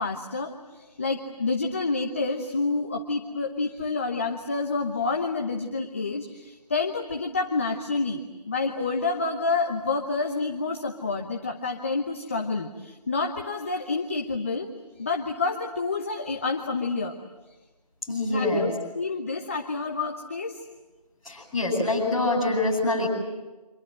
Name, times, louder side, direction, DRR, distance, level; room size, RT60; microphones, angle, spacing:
voice 1, 0.0-14.7 15.0-17.2 18.3-20.6, left 3 dB, 20° left, 3 dB, 0.9 m, -28 dB
voice 2, 18.1-18.7 21.2-23.1, left 2 dB, ahead, -10 dB, 6.4 m, -25 dB
29.0 x 26.0 x 7.7 m, 1.2 s
figure-of-eight pair, 170°, 21 cm